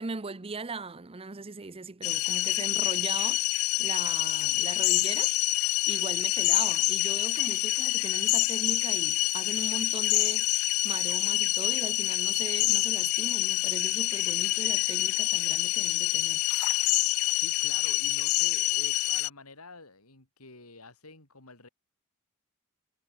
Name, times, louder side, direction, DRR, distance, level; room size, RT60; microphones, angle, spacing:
voice 1, 0.0-5.3 5.9-10.5 10.8-16.4, right 3 dB, 25° right, 0.8 m, -39 dB
sound 1, 2.0-19.3, left 19 dB, 70° left, 0.4 m, -27 dB
voice 2, 17.3-21.7, left 3 dB, 90° left, 5.9 m, -49 dB
head